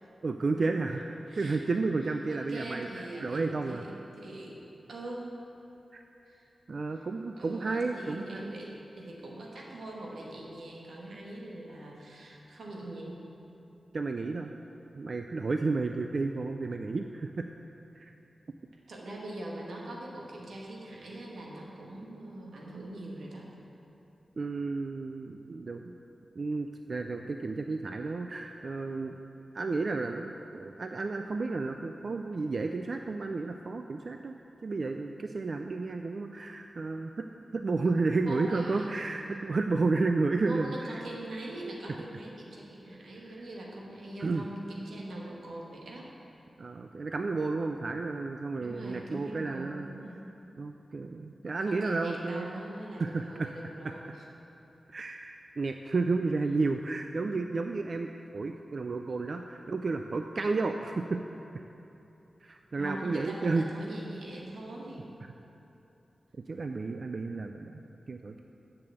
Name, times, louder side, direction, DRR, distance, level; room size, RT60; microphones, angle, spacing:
voice 1, 0.2-3.8 5.9-6.0 6.7-8.5 13.9-14.5 15.0-17.5 18.0-18.1 24.4-25.9 26.4-29.2 29.5-34.4 34.6-41.0 43.2-43.3 44.2-44.4 46.6-49.9 50.6-52.6 53.0-53.5 53.8-53.9 54.9-61.2 62.4-63.6 66.5-67.8 68.1-68.4, right 3 dB, 45° right, 5 dB, 0.3 m, -32 dB
voice 2, 1.3-1.6 2.0-4.6 4.9-5.3 6.2-6.5 6.9-7.0 7.4-13.2 18.9-23.5 38.2-39.0 40.5-46.1 48.6-50.2 51.7-54.0 62.8-65.1, right 1 dB, 85° right, -2 dB, 1.6 m, -42 dB
7.0 x 6.8 x 7.9 m, 3.0 s
wide cardioid pair, 170°, 0 cm